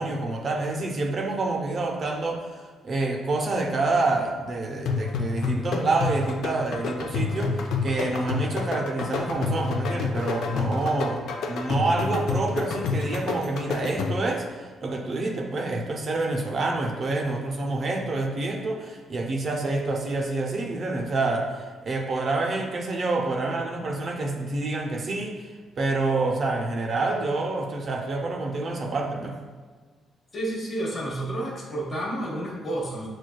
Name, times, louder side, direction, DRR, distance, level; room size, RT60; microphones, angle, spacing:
voice 1, 0.0-29.4, right 2 dB, 50° right, 1 dB, 0.5 m, -27 dB
sound 1, 4.9-14.4, left 4 dB, 75° left, 0.4 m, -29 dB
voice 2, 30.3-33.1, right 1 dB, 45° left, -3 dB, 1.1 m, -30 dB
6.1 x 2.2 x 2.2 m, 1.5 s
cardioid pair, 90°, 0 cm